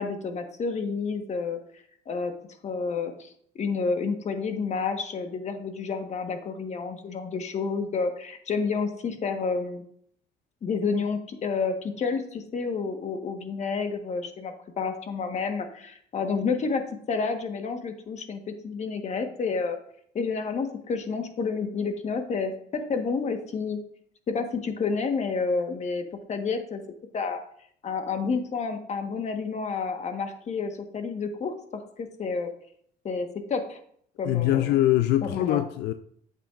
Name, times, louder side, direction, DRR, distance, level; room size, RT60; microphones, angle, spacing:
voice 1, 0.0-1.6 2.1-2.3 2.6-3.3 3.5-9.8 10.6-19.8 20.1-23.8 24.3-26.8 27.1-27.4 27.8-32.5 33.0-33.8 34.2-34.7 35.2-35.6, left 4 dB, 40° left, 1.3 m, -30 dB
voice 2, 34.2-35.9, left 13 dB, 80° left, 0.5 m, -23 dB
8.8 x 8.1 x 2.5 m
cardioid pair, 110°, 17 cm